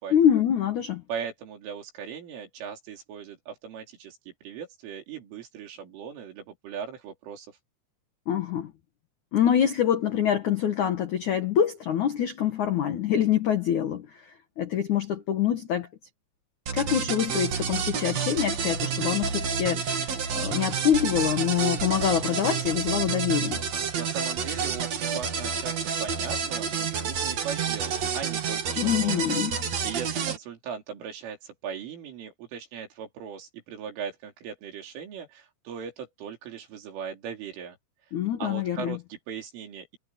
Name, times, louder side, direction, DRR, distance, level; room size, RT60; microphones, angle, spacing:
voice 1, 0.1-1.0 8.3-8.7 9.3-15.9 16.7-23.6 28.8-29.6 38.1-39.0, left 9 dB, 85° left, 1.7 m, -25 dB
voice 2, 1.1-7.6 23.9-29.4 29.8-37.8 38.4-40.0, right 7 dB, 75° right, 6.4 m, -39 dB
sound 1, 16.7-30.4, right 6 dB, 45° right, 2.4 m, -29 dB
omnidirectional pair, 5.7 m